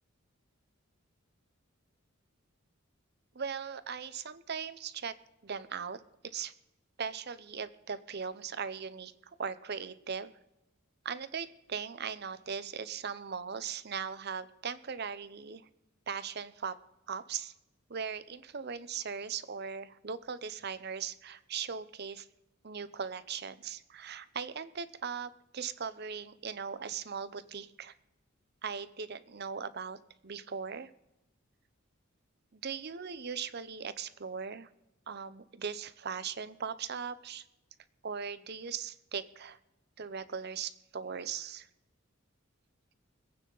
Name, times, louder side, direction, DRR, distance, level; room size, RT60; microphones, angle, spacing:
voice 1, 3.3-5.1 5.4-6.5 7.0-9.1 9.4-10.3 11.0-15.6 16.1-16.8 17.1-17.5 17.9-22.3 22.6-27.9 28.6-30.0 30.2-30.9 32.5-34.7 35.1-37.4 38.0-39.6 40.0-41.7, right 6 dB, 50° right, 15 dB, 0.8 m, -39 dB
25.5 x 9.1 x 4.0 m, 0.93 s
head